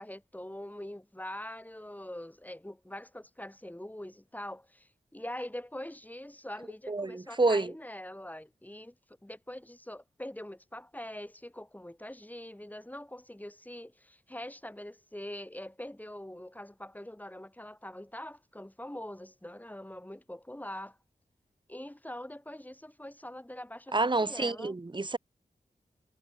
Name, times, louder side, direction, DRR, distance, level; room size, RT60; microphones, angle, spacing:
voice 1, 0.0-9.0 9.2-21.0 21.7-24.7, left 1 dB, 10° left, 2.3 m, -43 dB
voice 2, 6.9-7.7 23.9-25.2, right 3 dB, 30° right, 1.0 m, -28 dB
cardioid pair, 50°, 16 cm